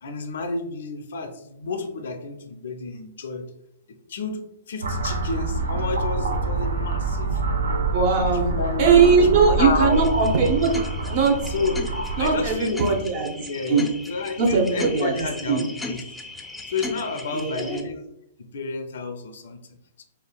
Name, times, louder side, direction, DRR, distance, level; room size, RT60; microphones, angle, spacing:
voice 1, 0.0-3.4 3.9-7.4 8.3-10.0 10.4-10.6 11.5-11.8 12.2-12.8 13.4-16.0 16.7-18.0 18.4-20.0, left 4 dB, 75° left, 7 dB, 0.4 m, -30 dB
sound 1, 4.8-12.5, right 3 dB, 85° right, 0.4 m, -26 dB
voice 2, 7.9-8.5 8.8-10.7 11.1-11.5 12.2-13.9 14.4-15.7 17.3-17.9, right 5 dB, 55° right, 2 dB, 0.7 m, -20 dB
sound 2, 9.9-17.8, left 2 dB, 5° left, 0.4 m, -38 dB
3.2 x 2.3 x 2.2 m, 0.80 s
hypercardioid pair, 120°, 0 cm